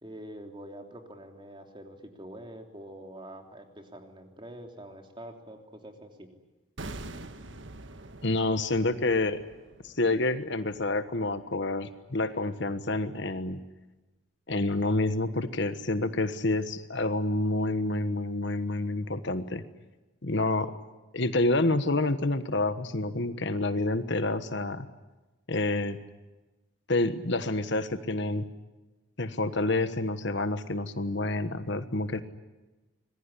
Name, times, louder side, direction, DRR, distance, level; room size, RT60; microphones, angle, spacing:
voice 1, 0.0-6.3, right 1 dB, 25° right, 4 dB, 3.1 m, -45 dB
sound 1, 6.8-11.8 12.0-12.2, right 2 dB, 55° right, 1.6 m, -45 dB
voice 2, 8.2-9.4 9.8-13.6 14.5-19.6 20.2-20.7 21.1-24.9 25.5-26.0 26.9-28.5 29.2-32.2, left 2 dB, 55° left, 11 dB, 1.3 m, -28 dB
26.0 x 21.0 x 9.9 m, 1.1 s
head